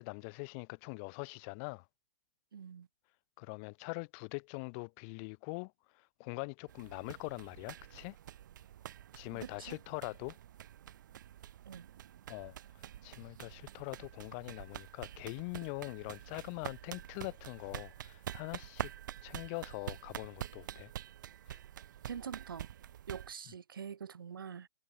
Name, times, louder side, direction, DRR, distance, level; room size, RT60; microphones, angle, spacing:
voice 1, 0.0-1.8 3.4-8.2 9.1-10.4 12.3-12.5 13.0-18.9 19.2-20.9 21.5-21.6, left 36 dB, 40° left, 3.3 m, -43 dB
voice 2, 2.5-2.9 9.3-9.8 11.6-11.9 22.1-22.7 23.1-24.7, right 7 dB, 85° right, 4.6 m, -45 dB
sound 1, 6.7-23.3, right 11 dB, 65° right, 3.7 m, -47 dB
hypercardioid pair, 135°, 11 cm